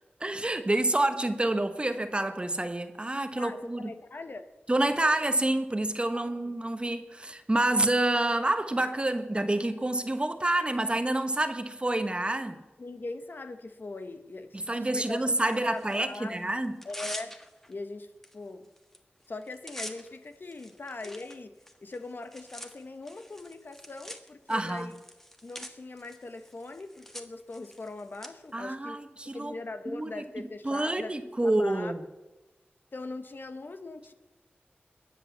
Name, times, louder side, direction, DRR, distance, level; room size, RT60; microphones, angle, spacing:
voice 1, 0.2-3.9 4.7-12.6 14.7-16.8 24.5-24.9 28.5-29.5 29.9-30.2 30.6-32.0, right 1 dB, 25° right, 1.1 m, -28 dB
voice 2, 3.4-4.5 6.1-6.5 12.8-16.4 16.8-17.4 17.7-18.7 19.3-24.9 25.4-29.0 29.3-31.1 31.4-31.9 32.9-34.1, left 3 dB, 55° left, 1.1 m, -41 dB
Tearing, 15.4-16.2 16.6-17.7 18.2-18.3 18.6-19.0 19.2-28.3, equal, 10° left, 1.5 m, -45 dB
21.5 x 7.9 x 7.2 m
wide cardioid pair, 75°, 4 cm